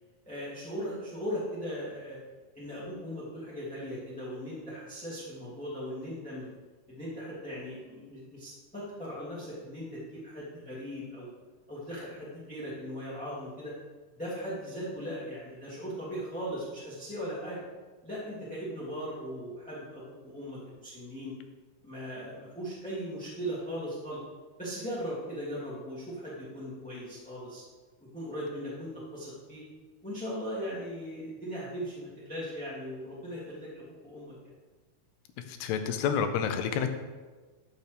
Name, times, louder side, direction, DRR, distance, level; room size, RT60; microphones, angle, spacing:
voice 1, 0.2-2.2 2.5-6.5 6.9-11.3 11.7-13.7 14.1-17.6 18.0-21.3 21.8-24.2 24.6-27.6 28.1-29.6 30.0-34.3, equal, 5° left, -8 dB, 1.2 m, -38 dB
voice 2, 35.4-36.9, left 7 dB, 85° left, 7 dB, 2.8 m, -29 dB
13.0 x 6.6 x 3.4 m, 1.3 s
omnidirectional pair, 4.6 m